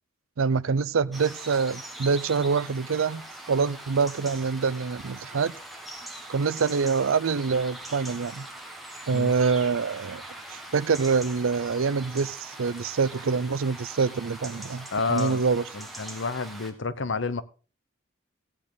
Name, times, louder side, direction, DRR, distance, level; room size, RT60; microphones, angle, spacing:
voice 1, 0.4-3.2 3.5-5.5 6.3-8.5 9.1-10.2 10.7-15.6, right 5 dB, 90° right, 0.5 m, -25 dB
sound 1, 1.1-16.7, right 1 dB, ahead, 1.7 m, -42 dB
voice 2, 14.9-15.4 15.7-17.4, left 4 dB, 70° left, 0.9 m, -29 dB
15.5 x 8.6 x 4.0 m
head